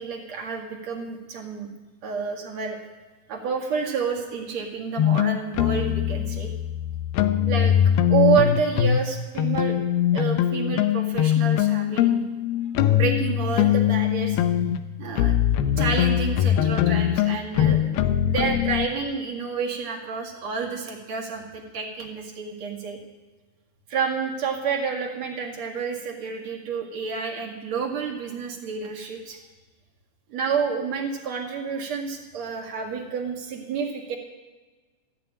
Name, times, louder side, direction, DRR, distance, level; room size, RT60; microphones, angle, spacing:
voice 1, 0.0-1.7 2.0-2.8 3.3-6.5 7.5-7.7 8.1-9.8 10.1-12.2 12.9-14.4 15.0-15.3 15.8-18.0 18.2-23.0 23.9-29.4 30.3-34.2, right 6 dB, 50° right, 0 dB, 2.6 m, -29 dB
sound 1, 5.0-9.1 9.4-18.9, left 11 dB, 80° left, 2.6 m, -22 dB
13.5 x 9.3 x 9.0 m, 1.3 s
omnidirectional pair, 4.6 m